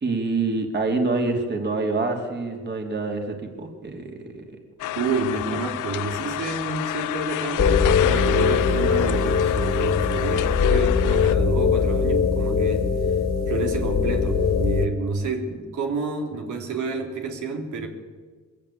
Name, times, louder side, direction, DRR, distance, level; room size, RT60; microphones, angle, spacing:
voice 1, 0.0-4.5, right 3 dB, 35° right, 3 dB, 3.1 m, -26 dB
sound 1, 4.8-11.3, left 14 dB, 90° left, 0.7 m, -30 dB
voice 2, 4.9-12.8 13.5-17.9, right 4 dB, 75° right, 2 dB, 3.3 m, -29 dB
sound 2, 7.6-14.9, left 6 dB, 60° left, 2.1 m, -21 dB
21.5 x 16.0 x 8.6 m, 1.5 s
cardioid pair, 90°, 30 cm